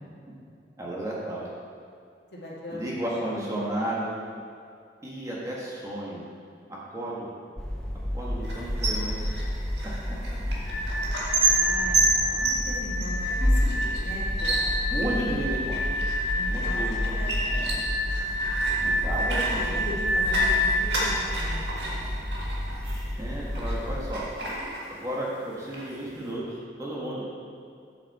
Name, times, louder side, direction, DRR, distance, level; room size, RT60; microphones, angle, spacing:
voice 1, 0.8-1.4 2.7-4.2 5.0-6.2 6.7-7.3 8.1-9.3 11.7-11.9 14.9-15.8 16.5-17.2 17.5-17.7 18.8-19.5 23.1-24.2 24.9-27.3, right 1 dB, 15° right, -5 dB, 1.3 m, -33 dB
voice 2, 2.3-2.8 3.3-3.6 11.4-14.7 15.3-15.4 16.3-18.0 19.2-22.1, equal, 65° left, -5 dB, 1.8 m, -39 dB
sound 1, 7.6-24.1, equal, 5° left, 0.5 m, -31 dB
sound 2, 8.4-23.8 24.1-25.3 25.6-26.3, right 2 dB, 75° right, 1.7 m, -31 dB
sound 3, 10.6-20.8, left 1 dB, 40° left, 0.9 m, -29 dB
8.4 x 7.1 x 4.2 m, 2.4 s
head